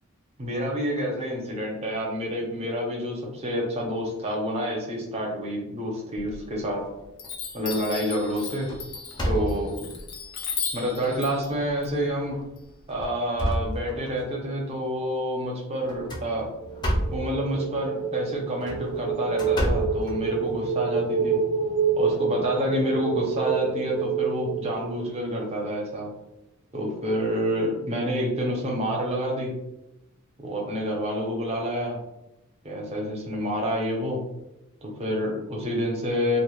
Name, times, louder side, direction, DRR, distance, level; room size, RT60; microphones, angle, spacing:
voice 1, 0.4-6.8 7.5-8.7 9.3-9.8 10.7-12.4 12.9-16.5 17.1-21.4 22.0-26.1 26.7-29.5 30.4-32.0 32.6-34.2 34.8-36.4, equal, 30° right, -1 dB, 0.6 m, -28 dB
Chime, 6.1-6.8 7.2-13.0, left 7 dB, 80° left, 0.5 m, -36 dB
sound 1, 6.7-7.3 7.7-8.0 8.3-9.9 10.6-10.7 11.2-11.3 12.2-12.4 12.9-14.3 15.9-17.3 18.4-20.7, equal, 20° left, 0.5 m, -30 dB
sound 2, 16.4-25.4, right 6 dB, 90° right, 0.4 m, -28 dB
2.5 x 2.2 x 3.0 m, 0.91 s
head